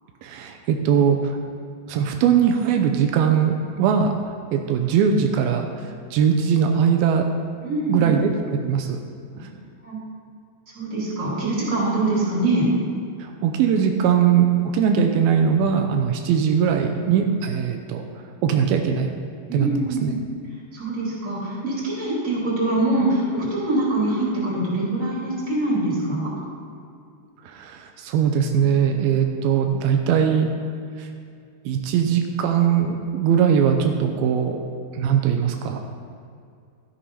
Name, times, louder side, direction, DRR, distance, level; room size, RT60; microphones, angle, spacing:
voice 1, 0.2-1.4 1.9-4.1 4.5-5.7 6.1-7.2 7.9-9.0 13.2-14.5 14.7-18.0 18.4-19.1 19.5-20.1 27.5-30.5 31.0-31.1 31.7-34.6 34.9-35.8, right 7 dB, 85° right, 4 dB, 2.5 m, -20 dB
voice 2, 7.6-8.2 9.8-10.0 10.7-12.6 19.5-20.2 20.7-26.3, right 2 dB, 20° right, -6 dB, 3.1 m, -24 dB
13.0 x 7.1 x 5.6 m, 2.4 s
omnidirectional pair, 4.4 m